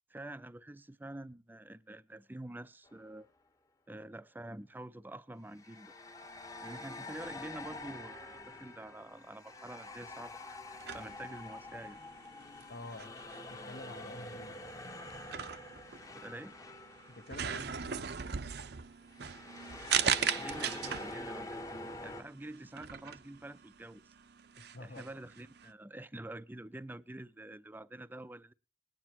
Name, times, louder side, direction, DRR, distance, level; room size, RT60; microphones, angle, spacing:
voice 1, 0.1-3.3 3.9-5.9 6.6-12.0 16.1-16.6 20.3-21.6 22.0-24.1 24.8-28.5, right 1 dB, 10° right, 0.5 m, -47 dB
sound 1, 2.8-3.1 5.5-17.9 18.1-18.4 19.1-22.2, left 2 dB, 20° left, 0.9 m, -46 dB
sound 2, 10.7-25.7, right 8 dB, 60° right, 0.7 m, -39 dB
voice 2, 12.7-13.1 13.5-14.6 17.1-18.1 24.7-25.1, left 2 dB, 60° left, 1.1 m, -48 dB
20.5 x 9.7 x 2.9 m
head